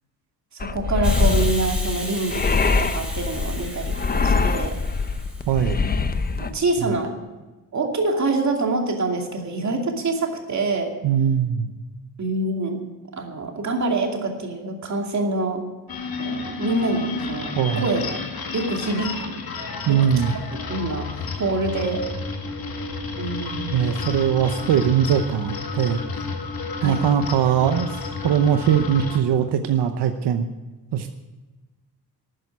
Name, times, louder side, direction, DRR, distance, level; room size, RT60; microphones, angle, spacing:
voice 1, 0.5-4.8 6.4-7.1 7.7-10.9 12.2-12.8 13.1-15.6 16.2-18.1 18.5-19.4 19.9-20.1 20.7-22.0 23.2-23.8 26.8-27.0, right 2 dB, 45° right, 2 dB, 2.6 m, -26 dB
sound 1, 0.6-6.5, left 4 dB, 25° left, 0.7 m, -23 dB
Hiss, 1.0-6.4, equal, ahead, 3.5 m, -35 dB
voice 2, 5.5-5.8 6.8-6.9 11.0-11.7 17.6-17.9 19.9-20.3 23.7-26.2 26.8-30.5 30.9-31.1, right 8 dB, 85° right, 7 dB, 0.9 m, -21 dB
sound 2, 15.9-29.2, left 4 dB, 60° left, 2.1 m, -31 dB
13.0 x 9.1 x 8.4 m, 1.2 s
cardioid pair, 120°, 40 cm